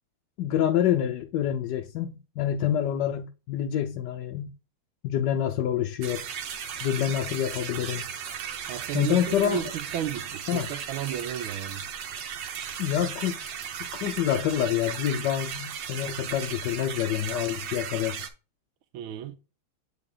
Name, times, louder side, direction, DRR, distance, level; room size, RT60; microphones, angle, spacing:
voice 1, 0.4-4.5 5.0-6.3 6.8-8.1 8.9-9.6 10.5-10.7 12.8-18.2, left 10 dB, 70° left, 1.1 m, -27 dB
sound 1, 6.0-18.3, right 8 dB, 65° right, 1.4 m, -36 dB
voice 2, 8.7-11.8 18.9-19.3, right 10 dB, 85° right, 1.6 m, -33 dB
8.0 x 3.9 x 3.7 m
omnidirectional pair, 2.3 m